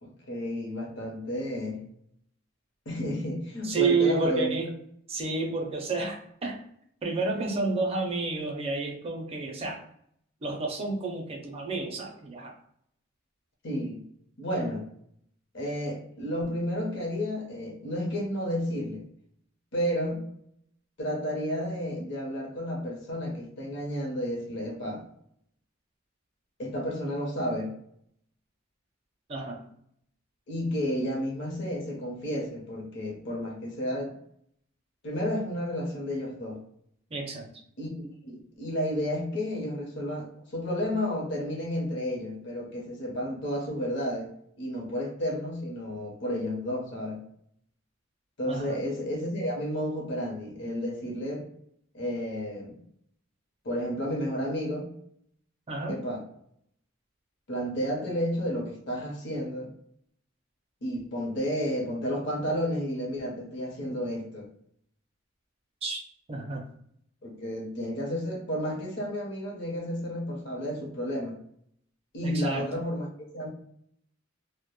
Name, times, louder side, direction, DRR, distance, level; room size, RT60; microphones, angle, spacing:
voice 1, 0.0-1.8 2.9-4.6 13.6-14.0 14.4-14.9 15.5-19.0 19.7-20.3 21.0-25.1 26.6-27.7 30.5-34.1 35.0-36.6 37.8-37.9 38.2-44.3 44.6-47.2 48.4-51.5 51.9-52.8 53.6-54.9 55.9-56.2 57.5-59.7 60.8-64.5 67.2-71.4 72.1-73.1 73.3-73.5, equal, 60° left, 0 dB, 0.7 m, -31 dB
voice 2, 3.6-4.7 5.1-6.6 7.0-9.8 10.4-12.5 29.3-29.6 37.1-37.5 48.5-48.8 55.7-56.0 65.8-66.0 66.3-66.6 72.2-72.8, right 3 dB, 30° right, 2 dB, 0.4 m, -30 dB
2.1 x 2.1 x 2.9 m, 0.70 s
head